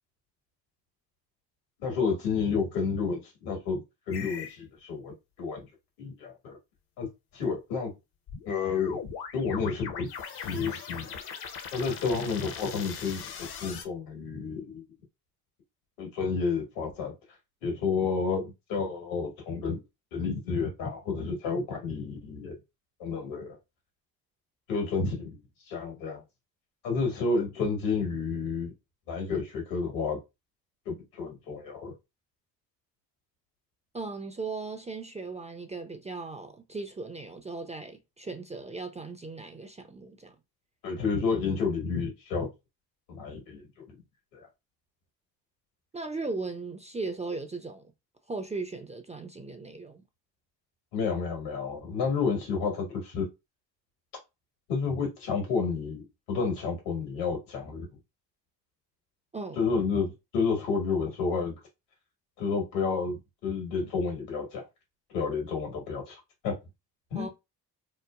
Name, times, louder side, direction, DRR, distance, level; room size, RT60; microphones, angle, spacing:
voice 1, 1.8-3.8 4.1-5.1 5.4-5.6 6.0-6.6 7.0-7.1 7.3-7.9 8.4-9.0 9.3-11.1 11.7-14.8 16.0-17.1 17.6-19.8 20.1-22.5 23.0-23.6 24.7-25.4 25.7-26.2 26.8-28.7 29.1-30.2 30.8-31.9 40.8-42.5 43.1-43.6 43.9-44.0 44.3-44.5 50.9-53.3 54.7-57.8 59.5-61.6 62.4-64.6 65.1-66.6 67.1-67.3, left 5 dB, 75° left, 1.5 m, -30 dB
sound 1, 4.1-4.6 8.3-13.8, left 7 dB, 55° left, 0.8 m, -40 dB
voice 2, 33.9-40.4 45.9-47.9 48.3-50.0 59.3-59.7 67.1-67.3, right 3 dB, 15° right, 0.4 m, -37 dB
3.0 x 2.1 x 2.3 m
hypercardioid pair, 45°, 47 cm